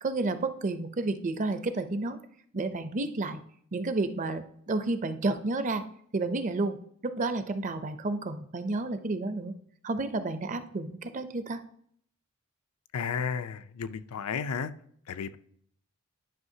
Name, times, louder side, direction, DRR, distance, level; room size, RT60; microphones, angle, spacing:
voice 1, 0.0-2.2 2.5-3.4 3.7-5.8 6.1-6.8 7.0-9.5 9.8-11.6, right 2 dB, 35° right, 0.5 m, -31 dB
voice 2, 12.9-14.7 15.1-15.4, left 6 dB, 85° left, 0.5 m, -33 dB
11.0 x 5.6 x 2.7 m
head